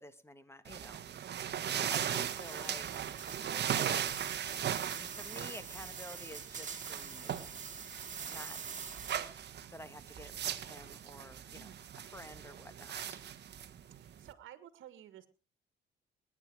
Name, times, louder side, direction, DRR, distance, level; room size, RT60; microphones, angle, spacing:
voice 1, 0.0-1.0 1.7-2.8 3.4-3.6 4.9-7.7 8.2-9.0 9.7-11.7 12.1-13.3, left 1 dB, 10° left, 12 dB, 1.6 m, -51 dB
sound 1, 0.7-14.3, right 9 dB, 60° right, 1.4 m, -39 dB
voice 2, 1.2-1.6 9.1-9.3 11.5-11.8 14.0-15.3, right 11 dB, 80° right, 12 dB, 1.8 m, -53 dB
sound 2, 1.9-9.4, right 6 dB, 40° right, 2.5 m, -46 dB
20.5 x 9.9 x 4.7 m, 0.33 s
cardioid pair, 90°, 20 cm